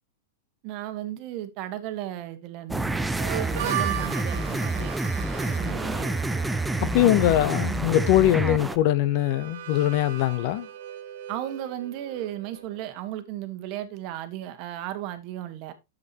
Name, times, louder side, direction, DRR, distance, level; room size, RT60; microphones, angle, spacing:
voice 1, 0.6-4.9 5.4-6.1 11.3-15.7, right 13 dB, 40° right, 1.3 m, -35 dB
sound 1, 2.7-8.8, right 2 dB, 5° right, 0.5 m, -28 dB
Harmonica, 3.3-12.9, right 11 dB, 60° right, 1.3 m, -38 dB
voice 2, 6.8-10.7, left 13 dB, 45° left, 0.6 m, -22 dB
9.5 x 7.4 x 2.8 m
supercardioid pair, 155°, 0 cm